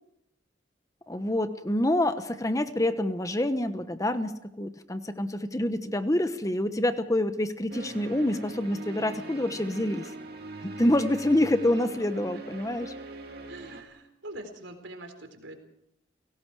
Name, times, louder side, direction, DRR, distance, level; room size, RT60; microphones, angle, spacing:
voice 1, 1.1-10.1 10.6-12.9, left 1 dB, 20° left, 10 dB, 1.1 m, -27 dB
sound 1, 7.7-13.8, right 2 dB, 55° right, 2.5 m, -42 dB
voice 2, 11.8-12.4 13.5-15.5, right 1 dB, 85° right, 6 dB, 4.0 m, -44 dB
30.0 x 18.0 x 4.9 m, 0.78 s
head